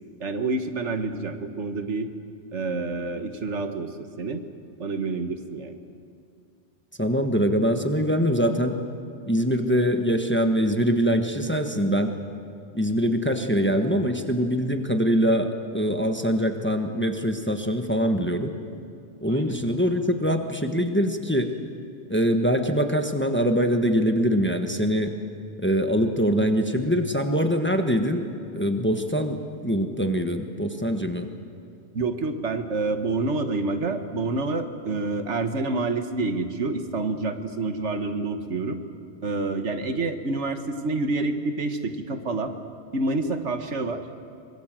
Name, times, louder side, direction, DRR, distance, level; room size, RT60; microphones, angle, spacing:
voice 1, 0.2-2.1 2.5-4.4 4.8-5.8 19.3-19.6 31.9-38.8 39.2-42.5 42.9-44.0, right 3 dB, 75° right, 7 dB, 1.7 m, -28 dB
voice 2, 7.0-8.8 9.3-12.2 12.7-18.5 19.2-21.5 22.1-25.1 25.6-28.3 28.5-31.3, equal, 10° left, 5 dB, 1.3 m, -23 dB
24.5 x 22.0 x 7.6 m, 2.4 s
omnidirectional pair, 1.2 m